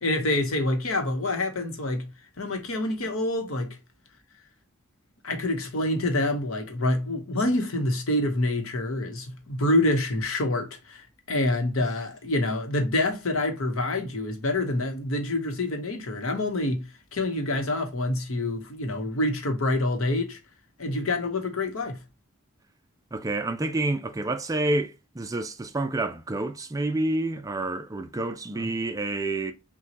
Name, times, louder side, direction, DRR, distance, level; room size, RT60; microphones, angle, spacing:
voice 1, 0.0-2.0 2.4-3.7 5.2-11.0 11.3-16.8 17.1-20.4 20.8-22.0 28.5-28.7, left 1 dB, 75° left, 1.0 m, -26 dB
voice 2, 23.1-29.5, right 2 dB, 15° right, 0.4 m, -28 dB
5.9 x 2.2 x 2.8 m
head